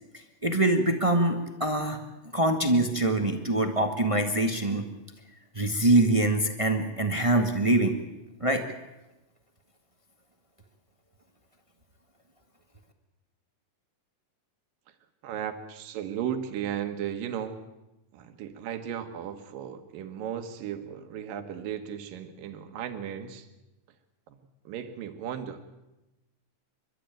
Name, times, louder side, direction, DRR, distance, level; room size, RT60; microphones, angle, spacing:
voice 1, 0.4-2.0 2.3-4.9 5.5-7.9 8.4-8.6, right 2 dB, 50° right, 5 dB, 0.4 m, -24 dB
voice 2, 15.2-17.7 18.1-23.5 24.3-24.4 24.6-25.6, right 9 dB, 80° right, 7 dB, 3.1 m, -35 dB
29.0 x 13.0 x 9.1 m, 1.0 s
omnidirectional pair, 3.9 m